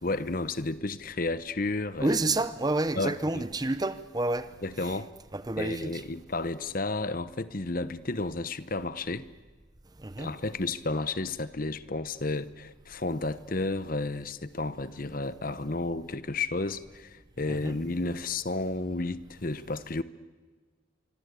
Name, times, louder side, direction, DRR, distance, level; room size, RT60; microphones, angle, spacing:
voice 1, 0.0-2.2 2.9-3.4 4.6-5.1 5.6-9.3 10.2-20.0, left 2 dB, 45° left, 0.9 m, -32 dB
voice 2, 2.0-4.5 5.3-6.0 10.0-10.3 17.5-17.8, right 2 dB, 20° right, 0.7 m, -29 dB
25.0 x 25.0 x 8.3 m
head